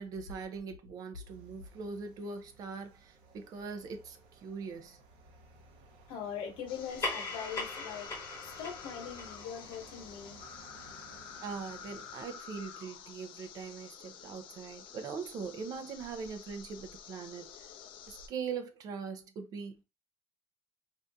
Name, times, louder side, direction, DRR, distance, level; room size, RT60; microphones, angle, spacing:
voice 1, 0.0-5.0 11.4-17.7 18.1-19.8, right 5 dB, 40° right, 0.5 m, -41 dB
sound 1, 1.2-12.2, right 4 dB, 70° right, 0.8 m, -58 dB
voice 2, 6.1-8.1 8.4-10.4, left 7 dB, 90° left, 1.1 m, -41 dB
sound 2, 6.7-18.3, left 7 dB, 65° left, 0.5 m, -49 dB
sound 3, 6.8-11.6, left 3 dB, 30° left, 1.2 m, -41 dB
2.7 x 2.5 x 3.4 m
cardioid pair, 175°, 9 cm